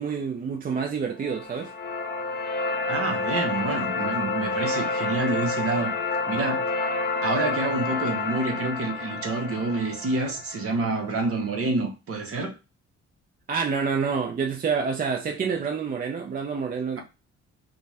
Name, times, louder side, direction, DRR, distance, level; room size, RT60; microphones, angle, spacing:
voice 1, 0.0-1.7 13.5-17.0, right 5 dB, 30° right, 0.4 m, -28 dB
sound 1, 1.2-11.3, left 3 dB, 35° left, 0.5 m, -29 dB
voice 2, 2.9-5.9 6.3-6.7 7.2-12.5, right 3 dB, 50° right, 0.9 m, -28 dB
2.5 x 2.2 x 3.2 m
cardioid pair, 90°, 30 cm